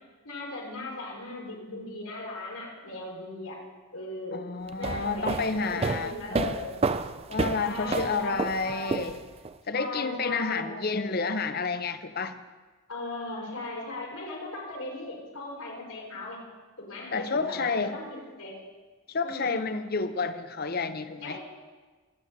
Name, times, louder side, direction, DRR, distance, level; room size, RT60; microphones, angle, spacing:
voice 1, 0.2-3.6 3.9-4.4 4.8-6.8 7.6-9.0 9.7-10.8 11.2-11.3 12.9-16.4 16.8-18.6 19.2-19.7 21.2-21.4, left 2 dB, 90° left, -4 dB, 5.3 m, -38 dB
voice 2, 4.3-6.5 7.3-9.2 9.7-12.4 17.1-18.0 19.1-21.4, left 4 dB, 45° left, 11 dB, 0.7 m, -30 dB
sound 1, 4.7-9.5, right 4 dB, 25° right, 0.3 m, -30 dB
24.0 x 9.1 x 4.0 m, 1.4 s
head